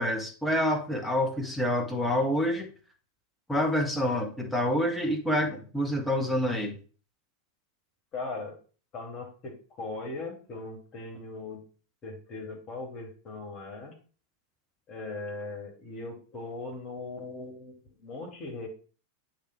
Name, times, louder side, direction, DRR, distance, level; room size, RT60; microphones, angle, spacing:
voice 1, 0.0-2.7 3.5-6.8, left 1 dB, 5° left, 1 dB, 1.2 m, -27 dB
voice 2, 8.1-8.6 8.9-11.6 12.0-13.9 14.9-18.7, left 3 dB, 30° left, 1 dB, 2.6 m, -39 dB
8.5 x 3.3 x 5.1 m, 0.39 s
figure-of-eight pair, 90°, 0 cm